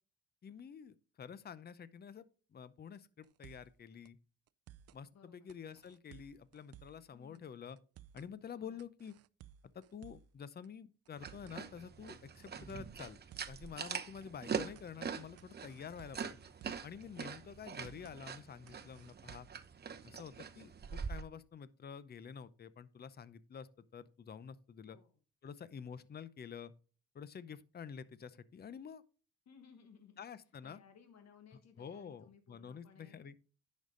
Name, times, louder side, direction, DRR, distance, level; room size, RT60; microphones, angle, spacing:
voice 1, 0.4-4.2 4.9-7.8 8.1-9.1 9.7-13.2 13.5-16.4 16.8-19.5 20.0-25.0 25.4-26.7 27.1-29.0 30.2-30.8 31.8-33.3, left 7 dB, 35° left, 0.6 m, -49 dB
sound 1, 3.2-3.8 4.1-4.2 4.5-5.0 5.5-7.1 7.3-7.4 7.8-8.3 8.8-10.4 10.6-10.7 11.1-11.6 12.1-13.6 13.9-14.0 14.3-14.9 15.4-16.9 17.2-17.3 17.6-18.2 18.7-19.6, right 11 dB, 55° right, 0.4 m, -58 dB
voice 2, 5.1-5.5 7.1-7.5 8.5-8.8 17.1-17.5 24.9-25.1 29.4-30.2 30.6-33.3, left 7 dB, 60° left, 1.5 m, -61 dB
sound 2, 11.2-21.2, right 6 dB, 35° right, 0.8 m, -44 dB
10.5 x 5.3 x 3.8 m
cardioid pair, 90°, 30 cm